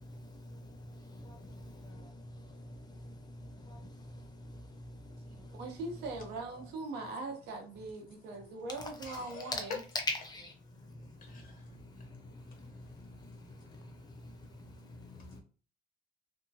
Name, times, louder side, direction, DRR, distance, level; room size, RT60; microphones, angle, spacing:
voice 1, 0.0-5.6 9.9-10.5 10.9-11.0 11.3-11.5 12.0-15.1, left 2 dB, 25° left, 0.7 m, -45 dB
voice 2, 5.3-9.8, right 3 dB, 80° right, 0.8 m, -41 dB
voice 3, 9.0-9.6 11.2-11.6 12.1-12.2 13.4-14.5 15.2-15.4, left 4 dB, 55° left, 1.0 m, -52 dB
2.8 x 2.3 x 2.7 m
cardioid pair, 110°, 17 cm